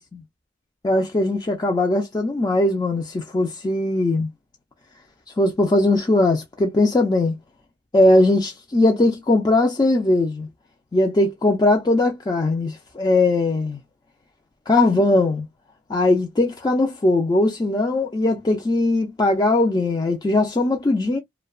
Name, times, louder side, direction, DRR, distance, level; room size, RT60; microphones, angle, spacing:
voice 1, 0.8-4.3 5.4-7.3 7.9-10.5 10.9-13.8 14.7-15.5 15.9-21.2, left 2 dB, 20° left, 0.4 m, -19 dB
2.7 x 2.1 x 2.2 m
head